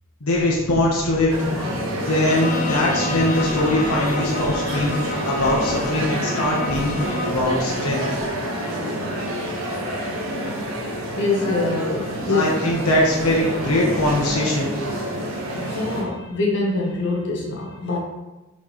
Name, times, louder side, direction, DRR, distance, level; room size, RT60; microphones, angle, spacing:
voice 1, 0.2-1.3 2.1-5.0 5.2-6.9 7.2-8.0 11.4-11.7 12.3-14.7, left 1 dB, 85° left, -3 dB, 1.3 m, -21 dB
sound 1, 1.3-16.0, equal, 70° right, 1.5 m, -28 dB
Bowed string instrument, 2.1-7.5, left 2 dB, 35° left, 0.6 m, -31 dB
voice 2, 11.1-12.4 15.6-18.0, left 3 dB, 60° left, -2 dB, 1.6 m, -24 dB
6.3 x 6.2 x 3.3 m, 1.1 s
head